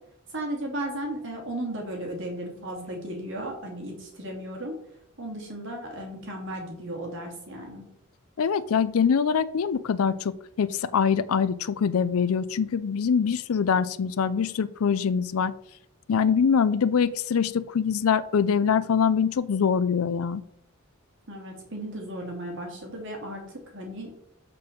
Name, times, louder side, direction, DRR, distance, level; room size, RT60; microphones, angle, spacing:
voice 1, 0.3-4.7 5.2-7.8 21.3-24.1, right 1 dB, 60° right, 1 dB, 2.9 m, -35 dB
voice 2, 8.4-15.5 16.1-20.4, left 6 dB, 85° left, 14 dB, 0.4 m, -24 dB
6.8 x 5.3 x 6.8 m, 0.73 s
head